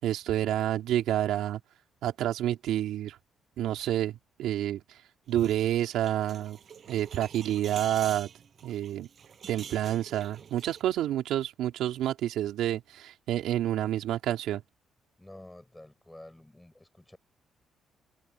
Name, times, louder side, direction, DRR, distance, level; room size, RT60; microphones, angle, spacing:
voice 1, 0.0-1.6 2.0-3.2 3.6-4.8 5.3-6.6 6.9-8.3 8.6-9.1 9.5-14.6, right 12 dB, 85° right, 3.4 m, -29 dB
sound 1, 5.3-10.8, right 7 dB, 50° right, 6.8 m, -46 dB
voice 2, 15.2-17.2, left 1 dB, 10° left, 6.7 m, -50 dB
cardioid pair, 90°, 0 cm